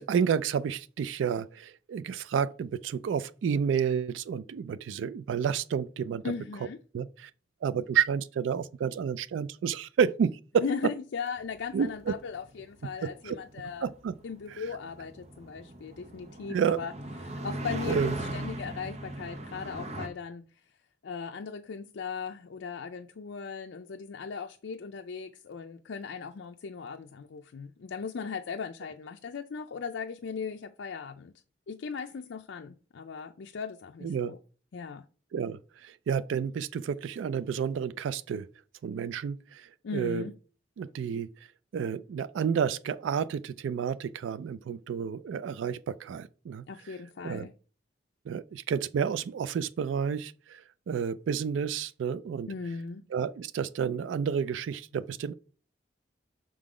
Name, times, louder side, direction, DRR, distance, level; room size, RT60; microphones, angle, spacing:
voice 1, 0.0-6.2 6.9-7.3 7.6-10.6 11.7-12.1 13.2-13.4 13.8-14.1 14.5-14.7 16.5-16.8 17.9-18.1 34.0-34.3 35.3-38.5 38.8-40.2 40.8-41.3 41.7-47.0 47.2-47.5 48.3-52.5 53.1-55.3, right 7 dB, 90° right, 0.3 m, -30 dB
voice 2, 6.2-6.8 10.6-13.9 14.2-16.9 17.2-18.0 18.3-20.5 21.0-31.3 31.7-34.4 34.7-35.0 39.8-40.3 46.7-47.5 52.5-53.0, left 5 dB, 80° left, 0.4 m, -38 dB
sound 1, 11.6-20.1, right 1 dB, 35° right, 0.7 m, -39 dB
6.1 x 3.8 x 4.8 m
head